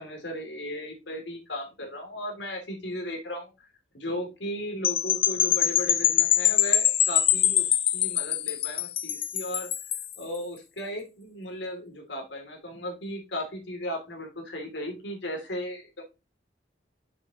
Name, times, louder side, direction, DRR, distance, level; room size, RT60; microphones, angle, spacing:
voice 1, 0.0-3.5 3.9-7.7 7.9-9.7 10.2-16.0, left 1 dB, 80° left, 3 dB, 2.8 m, -36 dB
sound 1, 4.8-10.1, left 10 dB, 30° left, 0.4 m, -24 dB
7.0 x 6.8 x 3.0 m, 0.28 s
head